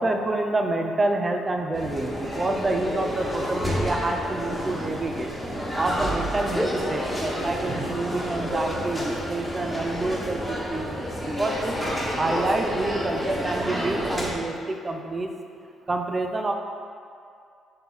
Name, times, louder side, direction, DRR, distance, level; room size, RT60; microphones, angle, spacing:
voice 1, 0.0-5.3 5.8-11.8 12.2-15.3 15.9-16.5, right 2 dB, 30° right, 4 dB, 0.6 m, -28 dB
sound 1, 1.7-14.3, equal, ahead, 1.5 m, -29 dB
6.5 x 4.2 x 5.6 m, 2.3 s
cardioid pair, 90°, 0 cm